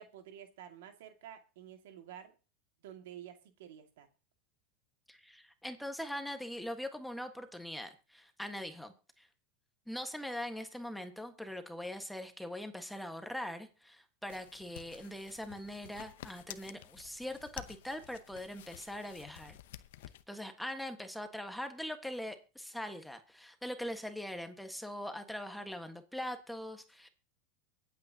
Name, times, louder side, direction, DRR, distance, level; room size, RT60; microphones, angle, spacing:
voice 1, 0.0-2.3 2.8-4.1, right 10 dB, 75° right, 2.1 m, -50 dB
voice 2, 5.1-9.3 9.9-19.6 20.3-27.1, left 1 dB, ahead, 1.5 m, -42 dB
sound 1, 14.3-20.2, left 13 dB, 75° left, 0.8 m, -51 dB
24.0 x 8.5 x 2.9 m
supercardioid pair, 115°, 0 cm